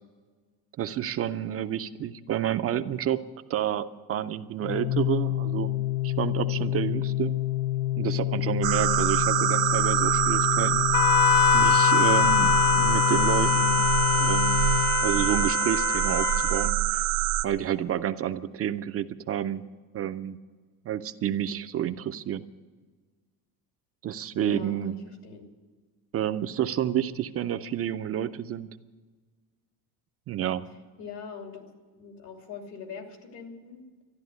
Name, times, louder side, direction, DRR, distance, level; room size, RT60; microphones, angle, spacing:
voice 1, 0.8-3.2 3.5-5.7 6.0-7.3 8.0-10.9 11.5-13.9 14.2-14.6 15.0-17.0 17.4-19.6 19.9-20.4 20.8-22.4 24.0-24.9 26.1-28.7 30.3-30.7, right 10 dB, 35° right, 10 dB, 0.4 m, -29 dB
Organ, 4.6-15.5, left 14 dB, 20° left, 0.7 m, -28 dB
sound 1, 8.6-17.4, right 15 dB, 65° right, 0.7 m, -25 dB
voice 2, 8.8-9.2 24.3-25.4 31.0-33.8, left 5 dB, 80° left, 4 dB, 3.0 m, -43 dB
Wind instrument woodwind instrument, 10.9-16.7, left 8 dB, 55° left, 0.8 m, -24 dB
13.5 x 11.0 x 9.4 m, 1.4 s
cardioid pair, 155°, 41 cm